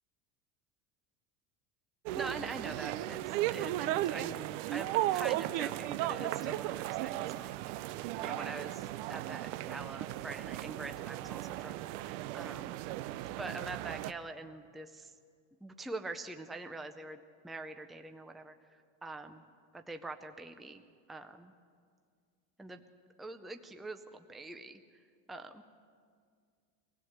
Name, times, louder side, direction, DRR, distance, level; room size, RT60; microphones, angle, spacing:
voice 1, 2.1-4.4 4.7-7.6 8.2-12.7 13.4-15.1 15.6-18.5 19.0-19.4 19.7-20.8 21.1-21.5 22.6-22.8 23.2-24.8 25.3-25.6, right 2 dB, ahead, 6 dB, 0.5 m, -44 dB
sound 1, 2.1-14.1, right 15 dB, 70° right, 0.7 m, -36 dB
24.0 x 16.5 x 7.9 m, 2.1 s
cardioid pair, 160°, 38 cm